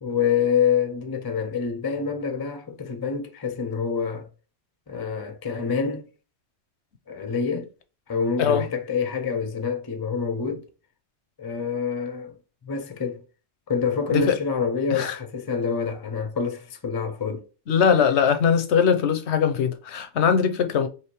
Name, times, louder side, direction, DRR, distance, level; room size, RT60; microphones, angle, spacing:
voice 1, 0.0-4.3 4.9-6.1 7.1-7.7 8.1-10.6 11.4-12.4 12.6-13.2 13.7-17.4, left 6 dB, 25° left, 0.5 m, -26 dB
voice 2, 17.7-20.9, left 7 dB, 80° left, 1.0 m, -21 dB
4.8 x 2.9 x 3.0 m
omnidirectional pair, 1.1 m